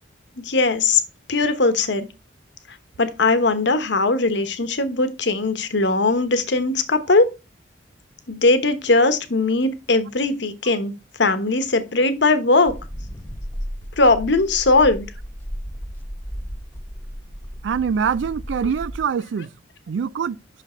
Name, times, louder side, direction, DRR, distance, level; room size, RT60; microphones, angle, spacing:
voice 1, 0.4-1.0 1.3-2.1 3.0-7.3 8.3-10.9 11.2-12.7 14.0-15.1, left 3 dB, 65° left, 1.1 m, -19 dB
sound 1, 12.7-19.1, equal, 10° left, 1.2 m, -34 dB
voice 2, 17.6-19.5 19.9-20.4, right 6 dB, 70° right, 0.3 m, -24 dB
6.0 x 5.9 x 4.4 m
head